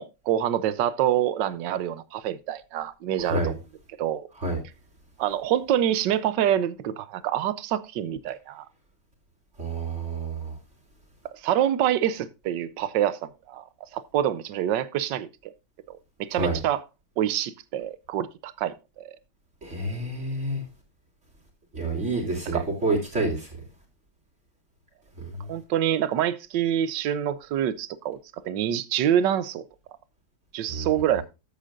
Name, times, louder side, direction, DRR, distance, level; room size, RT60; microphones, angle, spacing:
voice 1, 0.0-3.6 4.0-4.3 5.2-8.7 11.4-13.6 13.9-15.5 15.9-16.8 17.2-19.2 22.5-22.6 25.5-28.2 28.4-29.7 30.5-31.2, right 10 dB, 80° right, 1.4 m, -26 dB
voice 2, 3.2-3.5 4.4-4.6 9.6-10.5 16.4-16.6 19.6-20.6 21.7-23.5 25.2-25.5 30.7-30.9, right 2 dB, 40° right, 3.5 m, -28 dB
14.0 x 8.4 x 2.6 m
omnidirectional pair, 1.9 m